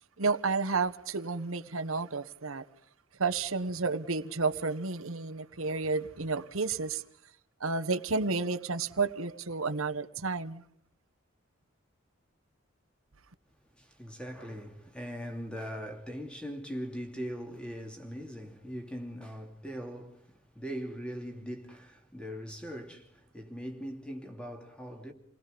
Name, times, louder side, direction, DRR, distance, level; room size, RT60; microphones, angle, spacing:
voice 1, 0.2-2.6 3.2-7.0 7.6-10.6, right 4 dB, 85° right, 1.3 m, -31 dB
voice 2, 13.7-25.1, equal, 5° left, 2.7 m, -41 dB
29.0 x 20.0 x 5.2 m
head